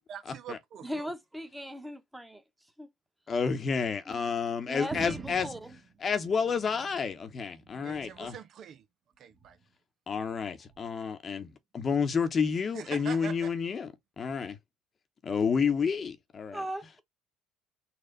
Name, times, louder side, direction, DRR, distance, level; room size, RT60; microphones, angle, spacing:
voice 1, 0.1-1.1 7.8-8.9 9.2-9.6 12.7-13.5, right 8 dB, 55° right, 0.5 m, -43 dB
voice 2, 0.8-2.4 2.8-2.9 4.1-4.2 4.7-5.8 16.5-17.0, equal, 5° right, 1.1 m, -39 dB
voice 3, 3.3-5.5 6.0-8.3 10.1-14.6 15.2-16.6, left 6 dB, 40° left, 0.9 m, -30 dB
sound 1, 4.9-7.1 7.5-8.4 9.3-9.7 10.7-10.8, right 5 dB, 35° right, 1.3 m, -45 dB
4.3 x 2.3 x 3.9 m
hypercardioid pair, 70°, 0 cm